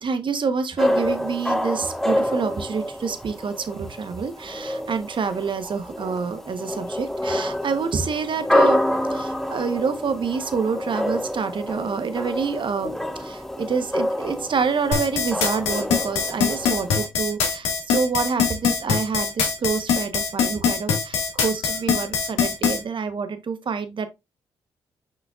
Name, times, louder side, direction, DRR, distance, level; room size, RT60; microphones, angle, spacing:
voice 1, 0.0-8.8 9.1-12.9 13.2-24.1, right 5 dB, 50° right, 1.2 m, -27 dB
sound 1, 0.8-17.1, left 1 dB, 5° left, 1.5 m, -27 dB
sound 2, 14.9-22.8, left 6 dB, 85° left, 1.8 m, -22 dB
6.6 x 5.8 x 2.5 m
hypercardioid pair, 45°, 10 cm